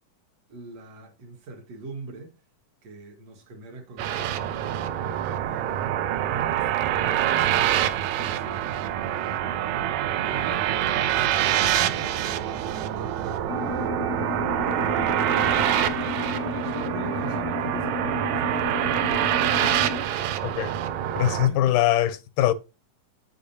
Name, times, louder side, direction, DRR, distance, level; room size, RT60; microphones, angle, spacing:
voice 1, 0.5-2.4 2.8-5.8 6.4-8.6 9.1-9.9 10.2-13.5 16.6-18.6 21.2-22.0, right 2 dB, 60° right, 2.3 m, -43 dB
sound 1, 4.0-21.5, right 11 dB, 80° right, 1.7 m, -25 dB
sound 2, 13.5-20.0, left 6 dB, 70° left, 0.9 m, -33 dB
voice 2, 20.4-20.7 21.2-22.5, left 12 dB, 90° left, 2.2 m, -22 dB
8.2 x 6.6 x 2.7 m
omnidirectional pair, 3.6 m